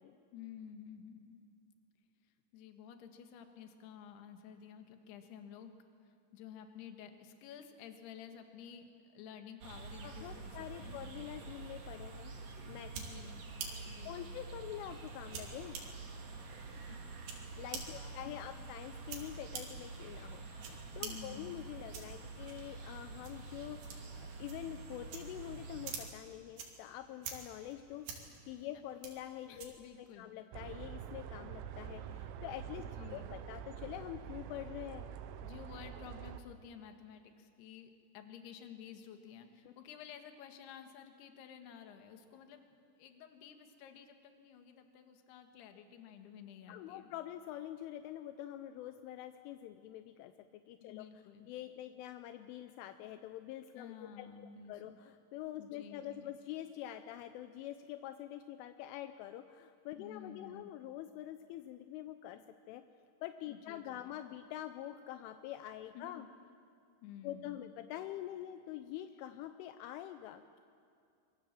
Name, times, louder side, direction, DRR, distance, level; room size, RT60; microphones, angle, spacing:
voice 1, 0.3-1.4 2.2-5.7 6.0-11.0 12.9-13.4 13.8-14.4 16.4-16.8 17.5-18.7 21.0-21.6 27.3-27.4 29.5-30.3 33.0-33.3 35.4-42.7 43.0-47.1 50.8-51.5 53.7-55.0 55.6-56.4 60.0-60.7 63.5-64.2 65.9-66.3 67.0-67.7, left 8 dB, 65° left, 6 dB, 3.2 m, -52 dB
sound 1, 9.6-26.1, right 3 dB, 45° right, 2.4 m, -48 dB
voice 2, 10.0-12.3 12.7-12.9 14.1-15.8 17.6-29.8 30.2-35.1 39.7-39.8 46.7-51.1 51.5-62.4 62.7-62.8 63.2-66.2 67.2-70.6, left 12 dB, 85° left, 9 dB, 3.2 m, -46 dB
sound 2, 12.6-30.0, right 5 dB, 65° right, 4.5 m, -50 dB
sound 3, 30.5-36.4, right 9 dB, 85° right, 3.4 m, -46 dB
26.0 x 22.5 x 7.5 m, 2.4 s
omnidirectional pair, 5.7 m